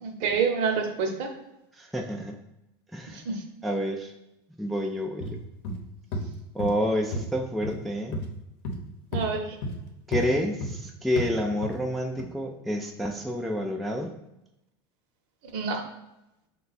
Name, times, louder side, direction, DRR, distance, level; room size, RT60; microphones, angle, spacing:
voice 1, 0.0-1.3 3.1-3.4 9.1-9.5 15.5-15.8, right 5 dB, 60° right, 4 dB, 0.8 m, -27 dB
voice 2, 1.7-2.4 2.9-3.2 3.6-4.1 4.6-5.4 6.5-8.2 10.1-14.1, equal, ahead, 0 dB, 0.3 m, -29 dB
sound 1, 5.2-5.4 5.6-5.8 6.1-6.2 6.6-6.7 7.1-7.3 7.6-7.8 8.1-8.3 8.6-8.8 9.1-9.2 9.6-9.8 10.1-10.2 10.6-10.8 11.2-11.3 11.6-11.8 12.2-12.3, left 1 dB, 60° left, 0.8 m, -31 dB
4.9 x 2.3 x 4.0 m, 0.88 s
supercardioid pair, 125°, 13 cm